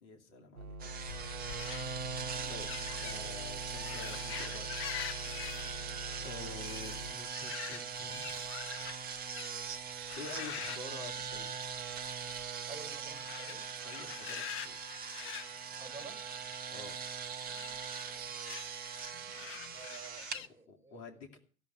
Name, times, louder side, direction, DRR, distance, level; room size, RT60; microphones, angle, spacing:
voice 1, 0.0-1.2 2.5-2.7 3.0-4.7 6.2-8.4 10.2-11.7 13.8-14.8 16.7-17.0 20.7-21.4, left 3 dB, 55° left, 3 dB, 2.7 m, -48 dB
sound 1, 0.6-7.1, equal, 80° right, 0.9 m, -46 dB
sound 2, 0.8-20.4, right 6 dB, 20° right, 1.1 m, -41 dB
sound 3, 0.9-9.7 10.0-11.8 12.0-12.4 13.1-16.5 17.4-20.5, left 10 dB, 30° left, 0.8 m, -46 dB
voice 2, 12.7-13.7 15.8-16.2 19.7-21.4, right 4 dB, 5° right, 3 dB, 5.7 m, -51 dB
16.0 x 7.2 x 9.1 m, 0.41 s
figure-of-eight pair, 90°, 43 cm